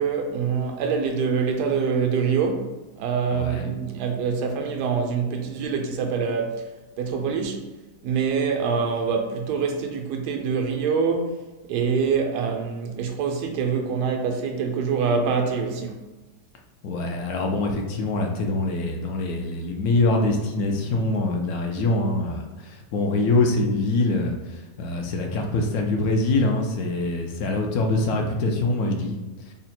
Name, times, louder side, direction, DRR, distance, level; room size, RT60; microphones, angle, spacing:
voice 1, 0.0-2.7 3.0-6.7 7.0-7.7 8.0-11.4 11.7-16.0, right 5 dB, 90° right, 1.2 m, -25 dB
voice 2, 3.3-3.7 16.8-29.1, left 2 dB, 70° left, 1.0 m, -24 dB
3.8 x 2.1 x 4.1 m
omnidirectional pair, 1.7 m